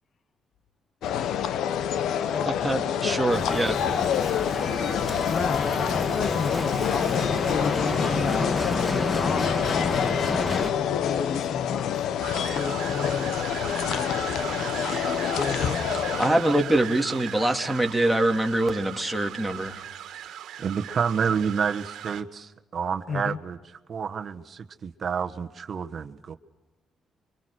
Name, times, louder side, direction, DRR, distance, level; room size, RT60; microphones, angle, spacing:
sound 1, 1.0-16.3, left 9 dB, 80° left, 1.0 m, -27 dB
voice 1, 2.4-4.0 16.2-19.8, right 1 dB, ahead, 2.8 m, -24 dB
Bicycle, 3.3-10.7, left 3 dB, 30° left, 2.0 m, -28 dB
voice 2, 5.2-10.3 10.7-11.9 12.5-13.3 13.9-14.2 15.3-15.8 16.2-16.9 23.1-23.4, left 6 dB, 50° left, 0.9 m, -33 dB
sound 2, 12.2-22.2, right 10 dB, 80° right, 1.8 m, -37 dB
voice 3, 20.6-26.3, right 6 dB, 50° right, 1.4 m, -29 dB
29.5 x 24.5 x 6.4 m
cardioid pair, 90°, 0 cm